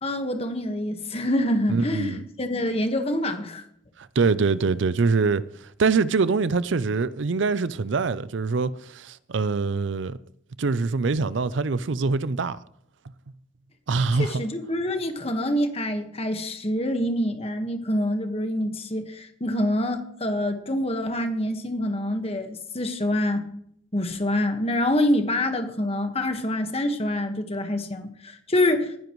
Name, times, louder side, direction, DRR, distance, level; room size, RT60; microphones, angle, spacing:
voice 1, 0.0-3.6 14.2-23.5 23.9-29.0, left 1 dB, 30° left, 1.4 m, -26 dB
voice 2, 1.7-2.2 4.0-5.4 5.8-10.2 10.6-12.6 13.9-14.4, right 4 dB, 70° right, 0.5 m, -24 dB
18.5 x 10.0 x 3.1 m
head